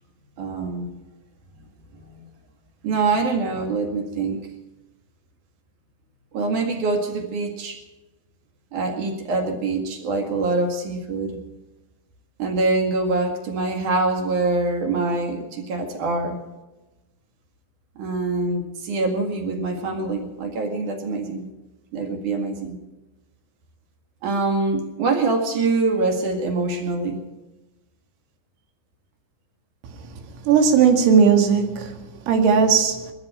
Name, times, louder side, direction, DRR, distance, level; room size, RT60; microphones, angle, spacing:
voice 1, 0.4-0.9 1.9-2.2 2.8-4.5 6.3-7.8 8.7-11.4 12.4-16.4 18.0-21.5 21.9-22.8 24.2-27.2, right 3 dB, 50° right, 3 dB, 2.6 m, -24 dB
voice 2, 30.5-32.0 32.3-33.0, right 6 dB, 80° right, 4 dB, 4.6 m, -16 dB
22.0 x 13.5 x 4.4 m, 1.1 s
omnidirectional pair, 5.9 m